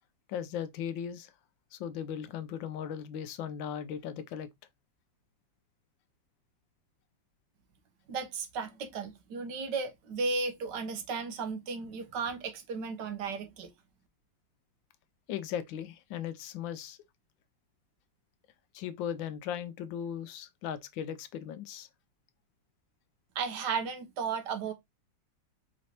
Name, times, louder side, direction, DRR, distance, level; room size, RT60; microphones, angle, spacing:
voice 1, 0.3-1.3 1.7-4.5 15.3-17.0 18.7-21.9, left 9 dB, 80° left, 1.3 m, -37 dB
voice 2, 8.1-13.7 23.3-24.7, right 4 dB, 70° right, 1.4 m, -34 dB
4.9 x 3.2 x 2.8 m
omnidirectional pair, 2.1 m